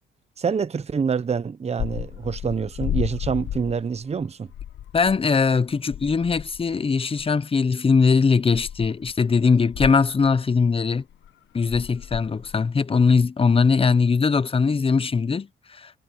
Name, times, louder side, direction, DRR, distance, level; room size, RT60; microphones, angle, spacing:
voice 1, 0.4-4.5, right 6 dB, 30° right, 1.0 m, -26 dB
sound 1, 1.8-4.2 4.5-5.2 5.5-5.6 5.9-6.8 7.2-7.3 7.9-8.0 8.5-9.1 9.5-10.6 11.1-11.3 11.7-12.6, left 11 dB, 70° left, 1.5 m, -33 dB
voice 2, 4.9-11.0 11.5-15.9, left 5 dB, 30° left, 0.9 m, -21 dB
cardioid pair, 90°, 20 cm